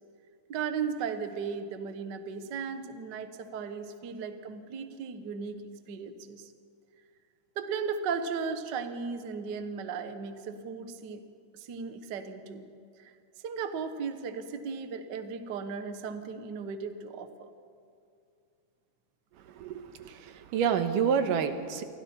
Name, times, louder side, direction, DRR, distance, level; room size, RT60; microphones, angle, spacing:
voice 1, 0.5-5.6 5.9-6.5 7.6-11.2 11.5-12.7 13.0-13.1 13.4-17.5, right 6 dB, 60° right, 8 dB, 1.1 m, -36 dB
voice 2, 19.6-21.8, right 7 dB, 85° right, 8 dB, 2.7 m, -28 dB
28.5 x 24.0 x 4.5 m, 2.4 s
omnidirectional pair, 3.7 m